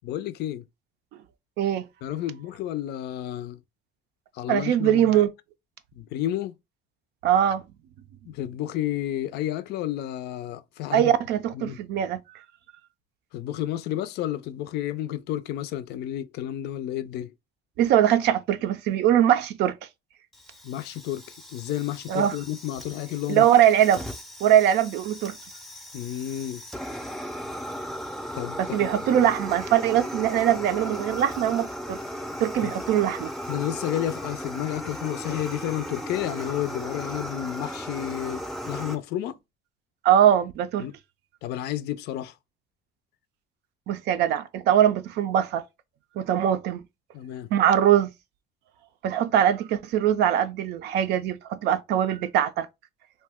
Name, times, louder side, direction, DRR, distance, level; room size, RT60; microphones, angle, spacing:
voice 1, 0.0-0.6 2.0-3.6 4.3-5.2 6.0-6.5 8.3-11.1 11.5-11.8 13.3-17.3 20.6-23.5 25.9-26.6 28.3-28.9 32.6-32.7 33.5-39.4 40.8-40.9 41.4-42.3 47.1-47.5, left 12 dB, 75° left, 0.4 m, -31 dB
voice 2, 4.5-5.3 7.2-7.6 10.9-12.2 17.8-19.7 22.1-22.4 23.3-24.0 24.4-25.4 28.6-32.0 32.4-33.3 40.0-40.9 43.9-45.6 46.2-46.8 47.5-48.1 49.0-52.7, right 10 dB, 80° right, 0.4 m, -22 dB
Fire, 20.3-38.9, equal, ahead, 0.5 m, -36 dB
2.7 x 2.2 x 3.4 m
cardioid pair, 110°, 17 cm